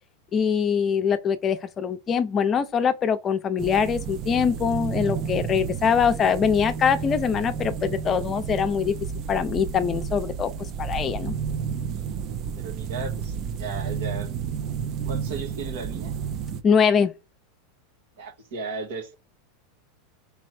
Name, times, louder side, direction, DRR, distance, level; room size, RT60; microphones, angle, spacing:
voice 1, 0.3-9.0 9.3-10.5 10.8-11.3 16.6-17.1, left 7 dB, 30° left, 0.6 m, -23 dB
sound 1, 3.6-16.6, right 7 dB, 45° right, 0.5 m, -31 dB
voice 2, 12.6-13.3 13.6-14.3 15.1-16.1 18.2-19.2, right 4 dB, 75° right, 1.4 m, -35 dB
3.4 x 3.1 x 4.6 m
hypercardioid pair, 105°, 0 cm